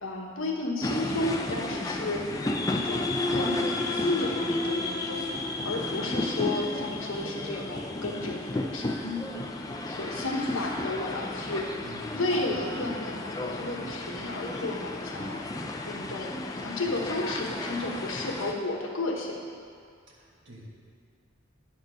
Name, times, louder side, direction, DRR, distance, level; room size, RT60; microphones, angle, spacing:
voice 1, 0.0-2.3 2.7-5.3 5.6-9.2 9.9-11.7 12.1-15.5 15.8-19.4, left 2 dB, 75° left, -1 dB, 1.2 m, -33 dB
sound 1, 0.8-18.5, left 2 dB, 15° left, 0.4 m, -32 dB
voice 2, 11.8-12.1 20.2-20.7, equal, 60° right, -3 dB, 1.6 m, -47 dB
10.0 x 4.4 x 5.0 m, 2.2 s
head